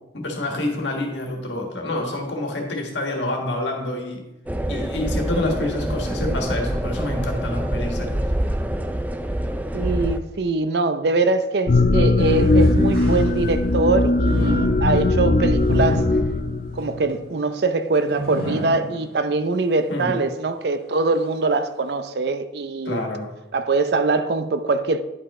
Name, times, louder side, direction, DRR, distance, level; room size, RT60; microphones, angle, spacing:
voice 1, 0.1-4.2 4.7-8.1 19.9-20.2 22.8-23.3, left 1 dB, 70° left, 1.6 m, -27 dB
sound 1, 4.5-10.2, right 1 dB, 10° right, 0.3 m, -26 dB
voice 2, 9.7-16.1 16.8-23.0 23.5-25.0, right 3 dB, 60° right, 0.5 m, -23 dB
sound 2, 11.7-17.0, left 2 dB, 45° left, 0.5 m, -19 dB
sound 3, 12.2-13.8 14.2-19.5 20.0-20.1 20.9-21.0, right 1 dB, 85° right, 2.9 m, -34 dB
10.5 x 5.5 x 3.7 m
head